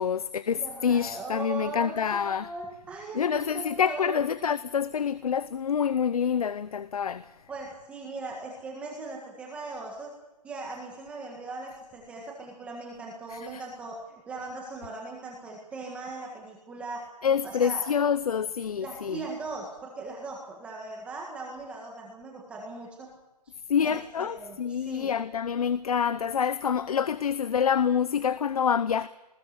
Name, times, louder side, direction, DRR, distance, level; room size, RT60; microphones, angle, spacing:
voice 1, 0.0-2.5 3.1-7.2 13.3-13.6 17.2-19.3 23.7-29.1, left 7 dB, 60° left, 0.7 m, -27 dB
voice 2, 0.5-4.2 7.5-10.1 10.4-17.1 17.4-17.8 18.8-23.1 23.4-23.5 23.8-25.1, right 3 dB, 5° right, 1.6 m, -39 dB
20.0 x 17.5 x 8.1 m
hypercardioid pair, 170°, 21 cm